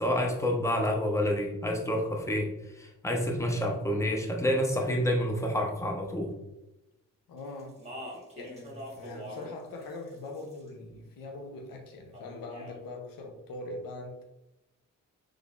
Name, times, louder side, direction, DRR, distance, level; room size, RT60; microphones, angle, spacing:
voice 1, 0.0-2.5 2.8-6.3, equal, 10° left, 1 dB, 0.8 m, -28 dB
voice 2, 7.3-7.8 8.4-14.2, left 2 dB, 80° left, 2 dB, 0.6 m, -42 dB
Speech, 7.6-9.5 9.8-10.7 12.1-12.8, equal, 20° right, 1.3 m, -43 dB
3.7 x 3.2 x 2.4 m, 0.94 s
supercardioid pair, 40°, 34 cm